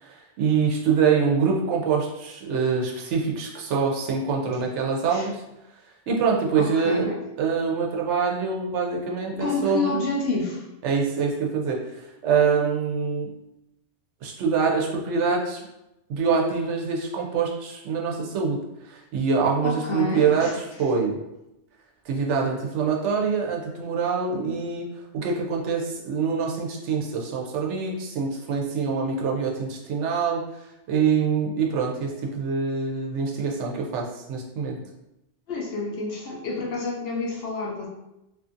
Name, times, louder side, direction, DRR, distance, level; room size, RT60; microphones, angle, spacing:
voice 1, 0.0-5.4 6.1-7.1 7.4-10.0 10.8-13.3 14.2-15.6 16.1-20.5 20.8-21.2 22.1-24.9 25.1-30.4 30.9-34.8, right 5 dB, 80° right, 0 dB, 0.9 m, -25 dB
voice 2, 6.6-7.2 9.3-10.7 19.6-20.6 35.5-37.9, left 3 dB, 60° left, -2 dB, 0.8 m, -29 dB
2.6 x 2.5 x 2.5 m, 0.91 s
omnidirectional pair, 1.2 m